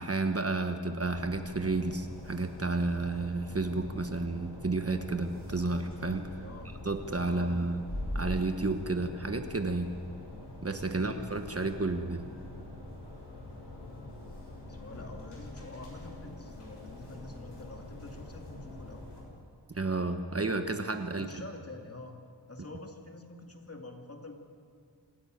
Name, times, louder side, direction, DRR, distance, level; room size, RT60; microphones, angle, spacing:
voice 1, 0.0-6.3 6.8-7.8 8.1-9.9 10.6-12.2 19.7-21.3, right 3 dB, 35° right, 7 dB, 1.1 m, -31 dB
sound 1, 1.0-19.2, left 1 dB, 70° left, 6.4 m, -44 dB
voice 2, 6.4-6.7 7.3-7.7 10.9-11.2 14.7-19.1 21.1-22.2 22.5-24.4, left 2 dB, 35° left, 3 dB, 2.4 m, -47 dB
26.5 x 11.5 x 9.2 m, 2.2 s
wide cardioid pair, 80°, 43 cm